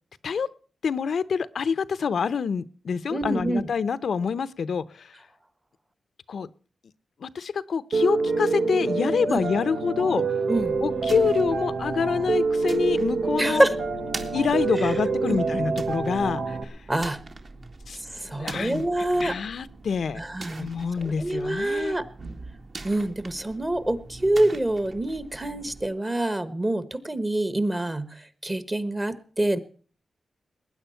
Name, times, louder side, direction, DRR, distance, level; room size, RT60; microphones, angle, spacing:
voice 1, 0.8-5.1 6.3-6.5 7.2-10.2 10.8-13.7 14.3-16.8 17.9-18.0 18.2-18.8 19.2-20.2 20.6-22.0, left 6 dB, 70° left, 16 dB, 0.7 m, -26 dB
voice 2, 3.1-3.6 9.3-9.4 10.5-10.8 13.4-13.7 14.8-14.9 15.2-15.4 16.9-17.2 18.1-19.4 20.1-20.7 21.0-22.0 22.8-29.6, right 1 dB, 20° right, 14 dB, 1.2 m, -26 dB
Piano, 7.9-16.6, right 4 dB, 80° right, 1.7 m, -26 dB
sound 1, 10.6-25.9, right 3 dB, 50° right, 1.9 m, -43 dB
19.5 x 9.8 x 5.6 m, 0.43 s
wide cardioid pair, 115°, 0 cm